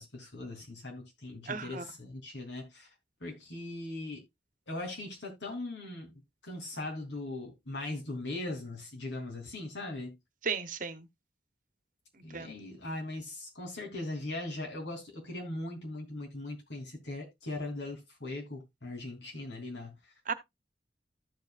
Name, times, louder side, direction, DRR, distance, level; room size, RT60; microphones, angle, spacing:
voice 1, 0.0-2.9 3.2-4.2 4.7-10.1 12.2-20.0, left 2 dB, 90° left, 3.3 m, -40 dB
voice 2, 1.5-1.8 10.4-11.1 12.1-12.5 20.3-20.4, right 5 dB, 50° right, 0.9 m, -35 dB
14.5 x 5.2 x 2.4 m
head